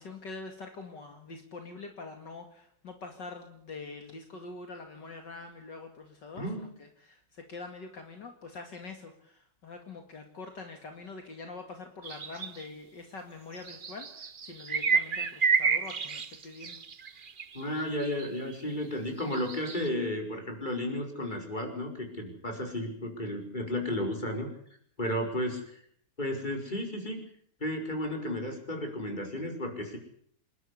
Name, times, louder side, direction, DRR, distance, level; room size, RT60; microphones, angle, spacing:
voice 1, 0.0-16.8, left 3 dB, 60° left, 4 dB, 2.8 m, -44 dB
voice 2, 6.4-6.7 17.5-24.5 25.0-25.8 26.2-27.2 27.6-30.0, left 1 dB, 20° left, 3 dB, 5.1 m, -33 dB
sound 1, 12.0-12.6 13.6-18.5 19.2-19.9, right 6 dB, 40° right, 0.8 m, -30 dB
27.5 x 12.5 x 9.9 m, 0.65 s
omnidirectional pair, 2.2 m